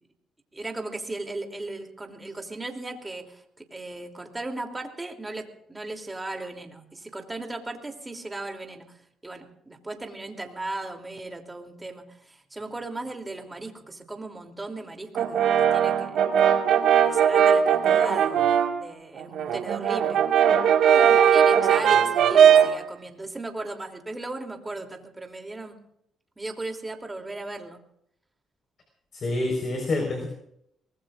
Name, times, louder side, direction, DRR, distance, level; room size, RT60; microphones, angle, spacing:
voice 1, 0.5-18.4 18.8-20.3 20.9-25.8 26.4-27.8, right 2 dB, 15° right, 3 dB, 3.0 m, -37 dB
Brass instrument, 15.2-18.8 19.2-22.8, right 8 dB, 80° right, 1.8 m, -19 dB
voice 2, 29.1-30.3, left 2 dB, 50° left, 1 dB, 4.6 m, -27 dB
24.0 x 20.0 x 2.5 m, 0.75 s
cardioid pair, 90°, 0 cm